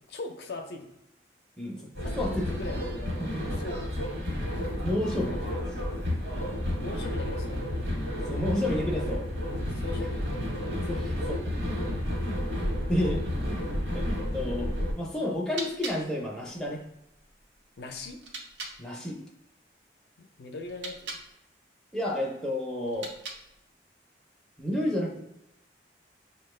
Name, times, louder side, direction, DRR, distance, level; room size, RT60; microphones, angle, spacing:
voice 1, 0.1-0.9 2.0-4.1 5.2-5.6 6.8-7.7 9.6-10.3 13.4-13.7 17.8-18.2 20.2-21.2, left 2 dB, 65° left, 4 dB, 0.5 m, -41 dB
voice 2, 1.6-1.9 2.2-2.5 3.2-3.4 4.6-5.3 6.4-6.6 8.3-9.2 10.9-11.4 12.9-13.2 13.9-16.8 18.8-19.2 21.9-23.1 24.6-25.2, left 1 dB, 5° left, -3 dB, 0.5 m, -31 dB
sound 1, 1.9-14.9, left 1 dB, 70° right, 1.0 m, -31 dB
sound 2, 15.4-18.8 20.6-21.3 22.8-23.7, right 3 dB, 85° right, 0.7 m, -42 dB
5.1 x 2.2 x 3.2 m, 0.85 s
head